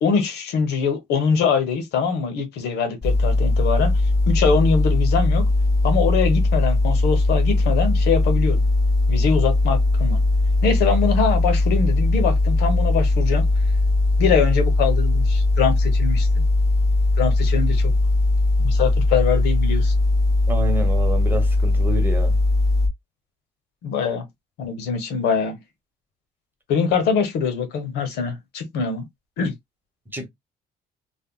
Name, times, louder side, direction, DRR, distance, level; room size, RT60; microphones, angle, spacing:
voice 1, 0.0-3.9 4.3-5.4 5.8-8.6 9.1-10.2 10.6-13.4 14.2-16.3 17.2-17.9 18.6-19.9 23.8-24.3 24.6-25.6 26.7-29.0 29.4-29.5, left 6 dB, 80° left, 0.9 m, -23 dB
sound 1, 3.0-22.9, left 2 dB, 20° left, 0.9 m, -19 dB
voice 2, 20.5-22.4 30.1-30.3, right 2 dB, 10° right, 0.9 m, -28 dB
3.4 x 2.2 x 2.3 m
cardioid pair, 110°, 17 cm